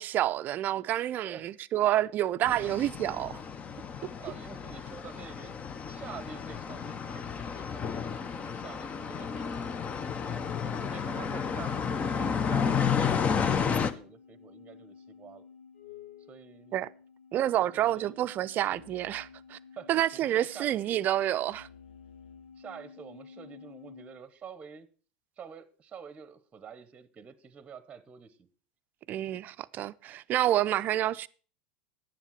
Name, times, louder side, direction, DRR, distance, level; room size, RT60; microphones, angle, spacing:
voice 1, 0.0-3.4 16.7-16.9 17.3-19.6 19.9-21.7 29.1-31.3, right 13 dB, 40° right, 0.5 m, -28 dB
sound 1, 2.4-13.9, left 6 dB, 30° left, 0.7 m, -32 dB
voice 2, 4.0-5.5 5.9-9.7 10.2-15.4 16.3-16.7 17.5-18.2 19.8-20.7 22.6-24.9 25.4-28.5, right 6 dB, 25° right, 0.9 m, -47 dB
sound 2, 13.0-24.2, left 6 dB, 90° left, 0.9 m, -52 dB
10.5 x 7.2 x 5.7 m
supercardioid pair, 110°, 5 cm